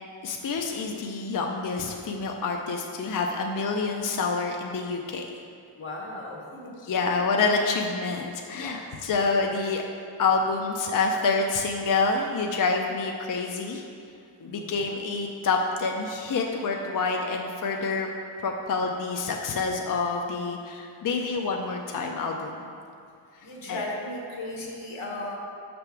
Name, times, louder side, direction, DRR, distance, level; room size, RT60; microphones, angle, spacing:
voice 1, 0.2-5.3 6.9-9.8 10.2-13.8 14.4-18.1 18.4-22.5 23.7-23.8, left 4 dB, 45° left, 2 dB, 0.4 m, -27 dB
voice 2, 5.8-6.7 8.5-8.9 14.4-14.7 21.1-21.3 23.4-25.4, left 2 dB, 75° left, -2 dB, 1.2 m, -36 dB
5.7 x 3.4 x 5.9 m, 2.4 s
wide cardioid pair, 105°, 49 cm